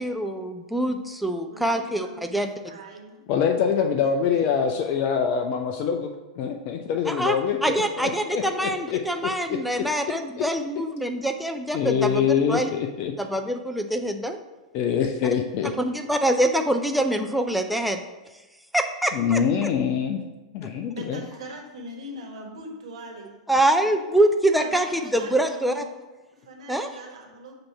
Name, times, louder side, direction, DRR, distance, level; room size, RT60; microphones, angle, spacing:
voice 1, 0.0-2.6 7.1-7.4 7.6-12.7 13.2-14.4 15.8-18.0 18.7-19.4 23.5-25.8 26.7-26.9, right 1 dB, ahead, 4 dB, 0.5 m, -24 dB
voice 2, 1.5-3.2 3.9-4.7 20.9-23.4 23.8-24.0 24.6-25.8 26.4-27.6, right 1 dB, 65° right, 1 dB, 1.4 m, -42 dB
voice 3, 3.3-6.1 6.4-9.3 10.4-10.5 11.7-13.1 14.7-15.7 19.1-20.2 20.5-21.2, left 7 dB, 45° left, 5 dB, 0.5 m, -25 dB
7.6 x 2.9 x 5.8 m, 1.1 s
figure-of-eight pair, 95°, 3 cm